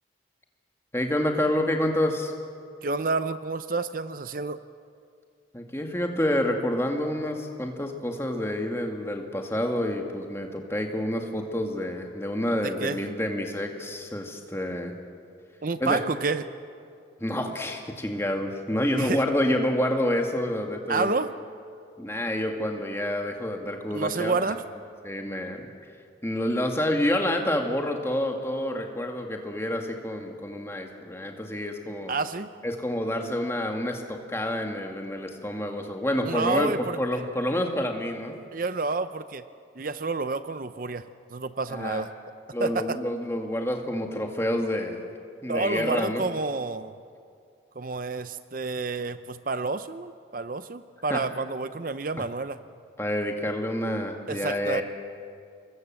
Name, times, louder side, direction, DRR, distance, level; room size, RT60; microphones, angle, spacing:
voice 1, 0.9-2.3 5.5-14.9 15.8-16.0 17.2-21.1 22.0-24.5 25.0-25.7 26.2-32.1 32.6-36.7 37.0-38.4 41.7-42.0 42.5-45.0 45.4-46.3 51.1-51.2 53.0-54.8, left 1 dB, 15° left, 3 dB, 2.1 m, -28 dB
voice 2, 2.8-4.6 12.5-13.0 15.6-16.5 19.0-19.2 20.9-21.3 23.9-24.6 32.1-32.5 36.2-37.0 38.5-39.4 39.8-41.1 41.3-42.1 42.6-43.0 45.5-46.9 47.8-52.6 54.3-54.8, right 3 dB, 45° right, 12 dB, 0.6 m, -29 dB
27.5 x 21.5 x 7.7 m, 2.3 s
head